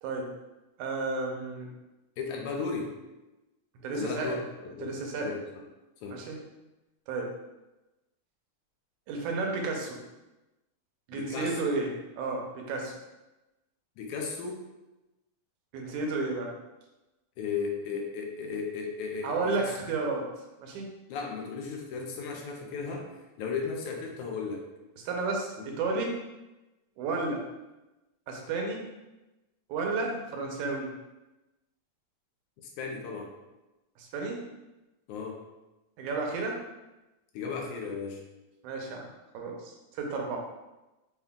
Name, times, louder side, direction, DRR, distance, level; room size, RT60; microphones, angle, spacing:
voice 1, 0.8-1.7 3.8-4.4 4.8-5.3 6.1-6.4 7.1-7.3 9.1-10.0 11.1-12.9 15.7-16.5 19.2-20.3 20.6-20.9 25.0-26.2 27.0-27.5 28.3-28.9 29.7-30.9 34.0-34.4 36.0-36.6 38.6-39.1 39.3-40.4, right 3 dB, 90° right, 1 dB, 2.1 m, -32 dB
voice 2, 2.2-2.9 3.9-4.4 4.6-5.6 6.0-6.2 11.1-11.6 14.0-14.6 17.4-19.3 19.6-19.7 21.1-23.1 23.4-24.6 25.6-25.7 32.8-33.3 35.1-35.4 37.3-38.2, left 5 dB, 80° left, 1 dB, 2.1 m, -35 dB
5.9 x 2.3 x 3.6 m, 1.0 s
omnidirectional pair, 3.5 m